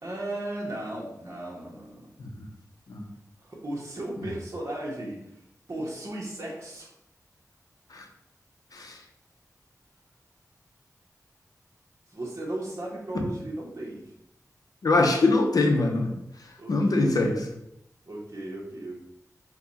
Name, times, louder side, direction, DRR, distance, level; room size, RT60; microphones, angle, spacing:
voice 1, 0.0-2.1 3.4-5.3 5.7-6.9 12.1-14.1 16.6-17.5 18.0-19.0, right 1 dB, 45° right, -5 dB, 1.1 m, -36 dB
voice 2, 14.8-16.1 16.7-17.3, left 2 dB, 70° left, 3 dB, 0.7 m, -23 dB
4.5 x 2.3 x 4.0 m, 0.80 s
wide cardioid pair, 95°, 6 cm